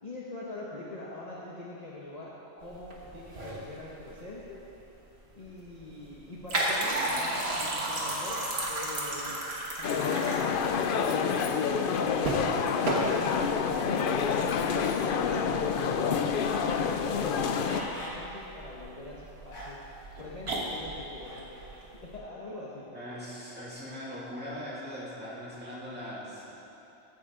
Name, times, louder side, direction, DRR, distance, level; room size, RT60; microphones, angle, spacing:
voice 1, 0.0-4.6 5.3-8.4 8.7-9.5 9.7-12.8 14.5-15.9 16.3-19.8 20.2-21.5 21.9-22.9, left 2 dB, 35° left, -6 dB, 1.0 m, -43 dB
sound 1, 2.6-22.2, right 1 dB, 60° right, 1.6 m, -35 dB
sound 2, 9.8-17.8, left 6 dB, 60° left, 0.6 m, -28 dB
sound 3, 16.3-16.7 17.3-18.2 18.7-18.8 19.4-20.0 21.2-21.7, left 1 dB, 85° left, 2.1 m, -43 dB
voice 2, 22.9-26.5, equal, 10° right, -9 dB, 2.4 m, -40 dB
13.5 x 7.6 x 3.7 m, 3.0 s
omnidirectional pair, 1.2 m